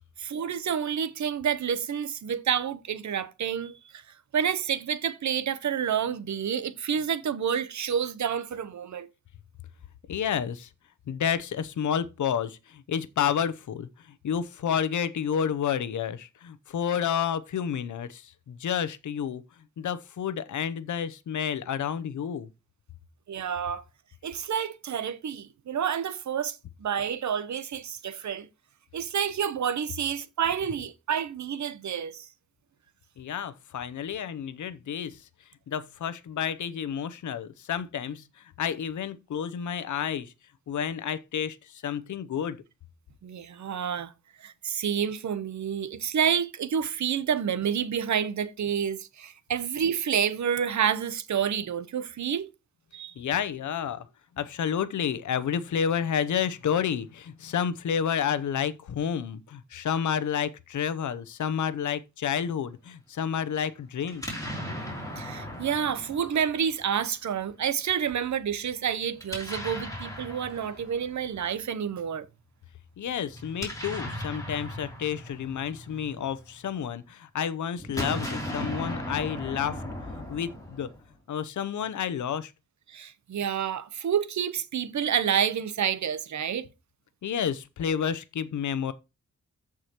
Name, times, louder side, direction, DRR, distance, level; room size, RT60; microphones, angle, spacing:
voice 1, 0.2-4.0 4.3-9.1 23.3-23.8 24.2-28.5 28.9-32.3 43.2-44.1 44.4-52.5 52.9-53.1 65.2-72.3 82.9-86.7, right 8 dB, 75° right, 0.9 m, -29 dB
voice 2, 10.1-10.7 11.1-13.9 14.2-19.4 19.8-22.5 33.2-35.2 35.7-38.2 38.6-40.3 40.7-42.6 53.2-54.1 54.4-64.2 73.0-79.8 80.3-80.9 81.3-82.5 87.2-88.9, left 8 dB, 80° left, 0.7 m, -30 dB
Explosion, 64.0-67.1 69.2-71.4 73.3-76.7 77.8-81.2, left 1 dB, 10° left, 3.0 m, -37 dB
14.5 x 4.9 x 2.9 m
wide cardioid pair, 95°, 29 cm